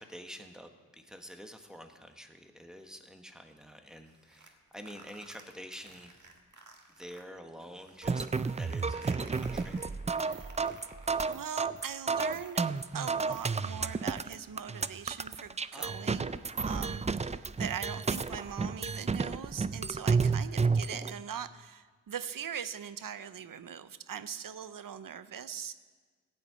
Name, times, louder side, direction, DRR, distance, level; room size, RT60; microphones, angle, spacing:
voice 1, 0.0-6.2 6.9-8.3 8.5-9.8 15.7-16.4, equal, ahead, 5 dB, 1.2 m, -48 dB
sound 1, 4.1-7.2 7.6-14.3, right 3 dB, 65° right, 1.5 m, -55 dB
sound 2, 8.0-21.1, right 4 dB, 20° right, 0.3 m, -31 dB
voice 2, 10.2-10.5 11.3-12.6 12.9-16.4 16.7-25.7, right 8 dB, 85° right, 13 dB, 0.6 m, -41 dB
15.5 x 5.9 x 8.7 m, 1.5 s
wide cardioid pair, 65°, 32 cm